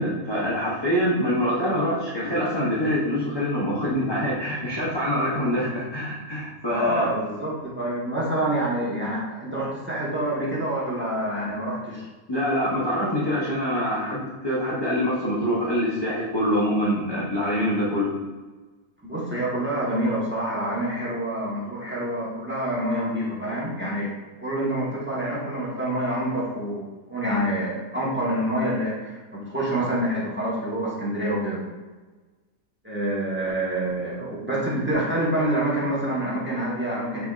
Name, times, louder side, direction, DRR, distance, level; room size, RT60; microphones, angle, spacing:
voice 1, 0.0-7.1 12.3-18.1, equal, 25° left, -7 dB, 0.5 m, -25 dB
voice 2, 6.7-12.0 19.0-24.1 24.4-31.6 32.8-37.3, right 1 dB, 10° right, -6 dB, 0.9 m, -27 dB
6.1 x 3.3 x 2.4 m, 1.3 s
omnidirectional pair, 1.5 m